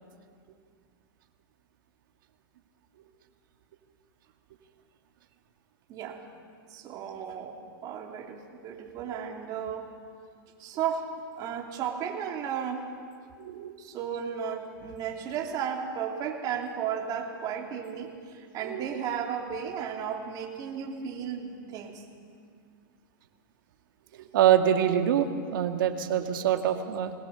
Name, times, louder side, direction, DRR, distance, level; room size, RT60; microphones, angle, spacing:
voice 1, 5.9-6.2 6.7-9.9 10.6-11.1 11.4-12.9 13.8-22.0, right 8 dB, 35° right, 1 dB, 2.9 m, -34 dB
voice 2, 13.4-13.7 18.6-18.9 24.1-27.1, right 10 dB, 70° right, 6 dB, 1.9 m, -25 dB
21.0 x 18.5 x 6.8 m, 2.2 s
hypercardioid pair, 135°, 12 cm